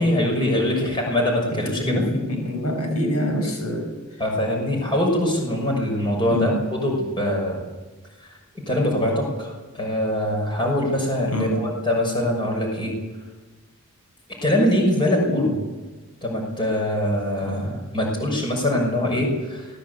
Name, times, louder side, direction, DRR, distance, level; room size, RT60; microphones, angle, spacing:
voice 1, 0.0-2.0 4.2-7.6 8.5-13.0 14.4-15.6 16.2-19.7, left 1 dB, 20° left, 1 dB, 6.4 m, -23 dB
voice 2, 1.5-4.2 4.7-5.0 6.3-6.7 11.3-11.7 17.5-17.6, left 1 dB, 85° left, 4 dB, 6.0 m, -26 dB
24.5 x 19.0 x 8.4 m, 1.2 s
head